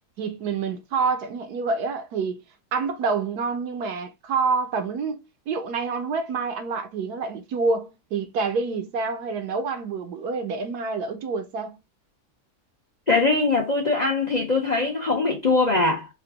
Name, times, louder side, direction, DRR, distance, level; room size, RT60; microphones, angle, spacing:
voice 1, 0.2-2.4 2.7-11.8, right 4 dB, 75° right, 1.3 m, -27 dB
voice 2, 13.1-16.1, left 3 dB, 40° left, 0.6 m, -22 dB
4.8 x 2.3 x 3.3 m
omnidirectional pair, 1.7 m